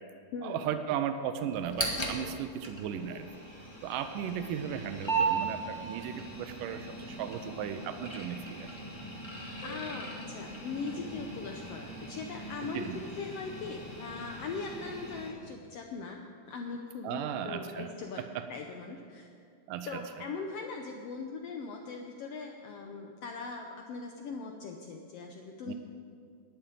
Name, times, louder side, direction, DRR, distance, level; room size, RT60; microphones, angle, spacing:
voice 1, 0.4-3.3 3.8-8.7 12.7-13.0 17.0-17.9 18.2-18.5 19.7-19.9 25.7-25.8, right 9 dB, 90° right, 9 dB, 2.2 m, -36 dB
sound 1, 1.5-15.3, right 3 dB, 35° left, 0.4 m, -38 dB
voice 2, 9.6-16.2 16.4-18.2 18.5-19.3 19.9-25.7, left 4 dB, 85° left, 3 dB, 1.3 m, -40 dB
11.5 x 7.1 x 9.0 m, 2.3 s
omnidirectional pair, 3.7 m